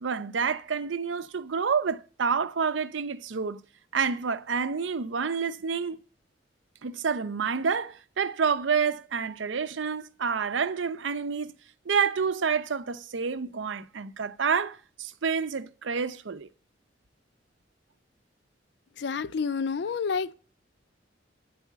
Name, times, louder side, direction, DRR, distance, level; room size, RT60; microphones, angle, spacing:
voice 1, 0.0-3.6 3.9-6.0 6.8-11.5 11.9-16.5, right 6 dB, 85° right, 0.6 m, -28 dB
voice 2, 19.0-20.3, left 5 dB, 65° left, 0.4 m, -29 dB
8.2 x 4.8 x 7.3 m
head